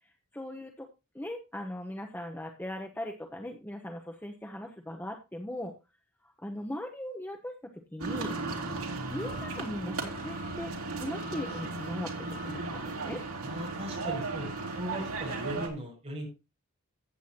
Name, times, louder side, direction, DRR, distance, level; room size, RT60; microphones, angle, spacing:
voice 1, 0.3-0.9 1.1-5.7 6.2-8.3 9.1-13.2, left 1 dB, 10° left, 3 dB, 0.9 m, -39 dB
sound 1, 8.0-15.7, right 3 dB, 80° right, 2.7 m, -36 dB
voice 2, 13.4-16.3, right 1 dB, 30° right, 0 dB, 6.3 m, -38 dB
14.5 x 8.3 x 2.8 m, 0.27 s
head